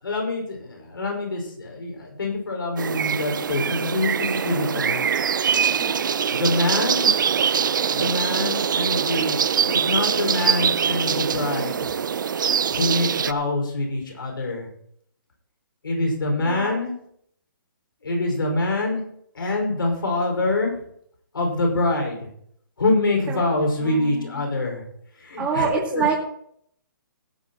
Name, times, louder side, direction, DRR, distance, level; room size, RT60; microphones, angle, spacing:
voice 1, 0.0-5.1 6.3-7.1 7.9-11.9 12.7-14.7 15.8-16.9 18.0-19.0 19.3-20.8 21.3-22.2 22.8-24.8 25.2-26.0, left 2 dB, 90° left, 1 dB, 5.5 m, -25 dB
sound 1, 2.8-13.3, right 7 dB, 65° right, 0.6 m, -23 dB
voice 2, 5.8-6.1 16.4-16.8 23.3-23.4 23.8-24.5 25.4-26.2, right 6 dB, 10° right, -3 dB, 2.3 m, -27 dB
17.5 x 10.0 x 3.1 m, 0.69 s
hypercardioid pair, 160°, 11 cm